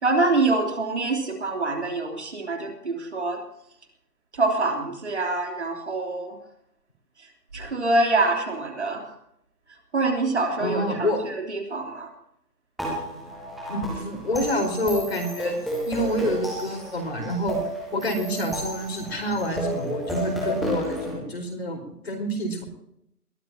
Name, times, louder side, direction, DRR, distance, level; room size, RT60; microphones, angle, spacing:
voice 1, 0.0-3.4 4.3-6.4 7.5-9.1 9.9-12.1, right 3 dB, 45° right, 2 dB, 3.4 m, -25 dB
voice 2, 10.6-11.3 13.7-15.6 15.9-17.6 17.9-22.6, equal, 40° left, 4 dB, 4.6 m, -27 dB
sound 1, 12.8-21.1, equal, ahead, 0.8 m, -31 dB
21.5 x 14.0 x 2.9 m, 0.75 s
hypercardioid pair, 175°, 47 cm